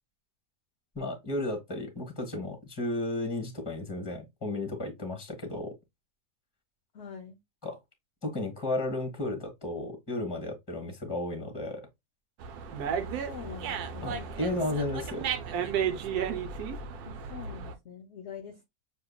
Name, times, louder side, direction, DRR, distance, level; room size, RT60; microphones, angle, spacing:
voice 1, 0.9-5.7 7.6-7.8 8.2-11.8 14.0-15.3, left 2 dB, 15° left, 1.2 m, -33 dB
voice 2, 6.9-7.4 13.0-14.3 17.1-18.7, left 7 dB, 55° left, 0.8 m, -44 dB
Dog, 12.4-17.7, right 7 dB, 75° right, 1.2 m, -33 dB
6.6 x 2.8 x 2.2 m
omnidirectional pair, 1.7 m